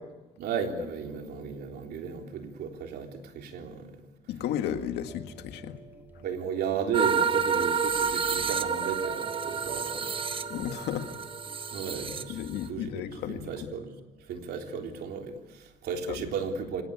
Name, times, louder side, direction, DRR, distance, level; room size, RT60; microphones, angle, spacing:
voice 1, 0.4-3.9 6.2-10.1 11.7-12.4 12.7-14.0 14.3-16.8, right 6 dB, 70° right, 3 dB, 3.6 m, -34 dB
voice 2, 4.3-5.8 6.2-6.3 10.5-11.1 12.1-13.7 16.1-16.3, left 10 dB, 80° left, 7 dB, 1.9 m, -34 dB
sound 1, 5.1-12.4, right 2 dB, 10° right, 2.2 m, -47 dB
sound 2, 6.9-12.7, right 6 dB, 30° right, 1.2 m, -29 dB
25.5 x 19.0 x 8.5 m, 1.1 s
cardioid pair, 110°, 17 cm